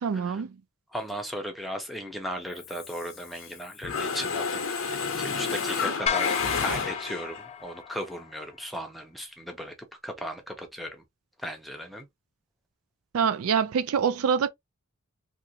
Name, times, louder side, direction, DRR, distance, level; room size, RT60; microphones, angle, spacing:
voice 1, 0.0-0.6 13.1-14.5, right 6 dB, 70° right, 0.4 m, -25 dB
voice 2, 0.9-4.6 4.9-9.7 10.0-11.0 11.4-12.1, equal, ahead, 0.7 m, -36 dB
Mechanisms, 2.6-3.5 3.8-7.4, left 5 dB, 65° left, 0.8 m, -30 dB
sound 1, 6.1-8.4, left 7 dB, 30° left, 0.3 m, -32 dB
2.9 x 2.5 x 2.7 m
head